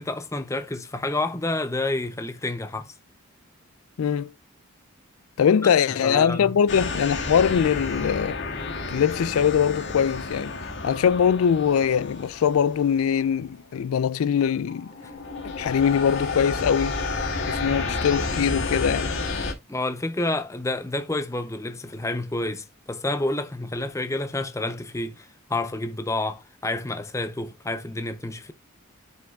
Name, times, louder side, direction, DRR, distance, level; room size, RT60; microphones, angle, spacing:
voice 1, 0.0-2.9 5.6-5.7 6.0-6.5 19.7-28.5, left 2 dB, 15° left, 0.6 m, -29 dB
voice 2, 4.0-4.3 5.4-8.4 8.9-10.5 10.8-14.9 15.4-17.0 17.5-19.1, left 7 dB, 75° left, 0.4 m, -22 dB
sound 1, 6.7-13.6 14.1-14.4 14.7-19.5, left 3 dB, 50° left, 2.5 m, -31 dB
11.5 x 5.4 x 2.3 m
head